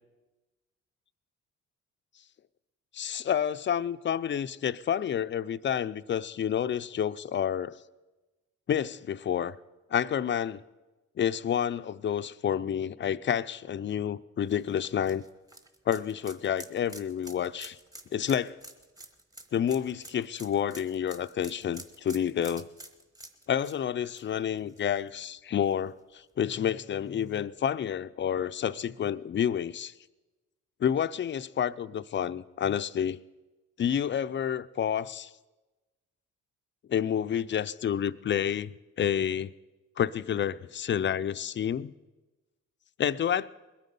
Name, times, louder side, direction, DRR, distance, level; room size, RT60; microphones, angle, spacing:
voice 1, 2.9-7.8 8.7-9.5 9.9-10.6 11.2-15.2 15.9-17.8 18.1-18.6 19.5-22.7 23.5-29.9 30.8-33.2 33.8-35.3 36.9-38.7 39.0-39.5 40.0-41.9 43.0-43.5, left 9 dB, 40° left, 14 dB, 0.5 m, -29 dB
sound 1, 14.5-25.3 25.6-25.7 27.2-27.3, right 1 dB, 10° right, 1.2 m, -48 dB
20.5 x 9.4 x 5.4 m, 1.1 s
cardioid pair, 90°, 30 cm